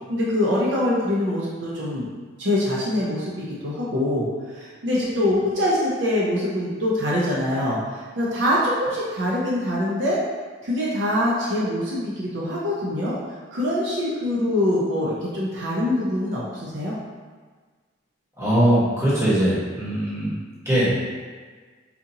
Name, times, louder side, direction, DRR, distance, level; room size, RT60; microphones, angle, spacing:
voice 1, 0.1-2.1 2.4-10.2 10.6-13.1 13.5-16.9, left 1 dB, 65° right, -6 dB, 0.6 m, -24 dB
voice 2, 18.4-20.3 20.6-20.9, right 1 dB, 15° right, -10 dB, 1.1 m, -20 dB
4.2 x 2.5 x 2.7 m, 1.5 s
head